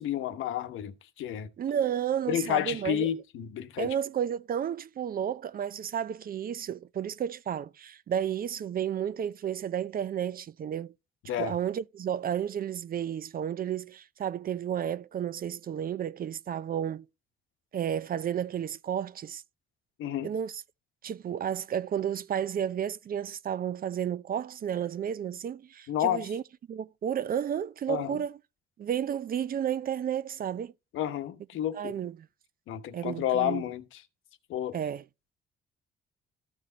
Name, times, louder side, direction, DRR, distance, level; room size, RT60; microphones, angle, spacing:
voice 1, 0.0-1.5 2.3-3.9 11.2-11.5 20.0-20.3 25.9-26.3 27.9-28.2 30.9-31.9 32.7-34.0 34.5-34.8, left 11 dB, 85° left, 1.1 m, -31 dB
voice 2, 1.6-3.1 3.8-10.9 11.4-17.1 17.7-19.4 20.2-20.6 21.0-26.4 26.7-28.4 28.8-30.7 31.8-32.2 32.9-33.7 34.7-35.0, right 9 dB, 45° right, 0.5 m, -32 dB
14.0 x 4.8 x 3.9 m
cardioid pair, 90°, 20 cm